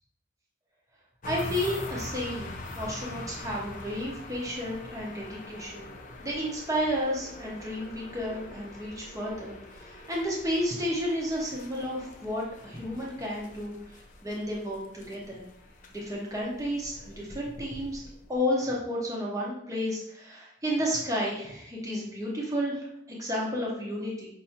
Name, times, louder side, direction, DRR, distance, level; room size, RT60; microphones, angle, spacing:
sound 1, 1.2-18.5, left 2 dB, 45° left, 0.5 m, -43 dB
voice 1, 1.2-2.5 2.8-5.9 6.2-15.4 15.9-18.0 18.3-24.3, equal, 20° right, -4 dB, 0.9 m, -32 dB
5.6 x 2.7 x 2.8 m, 0.74 s
head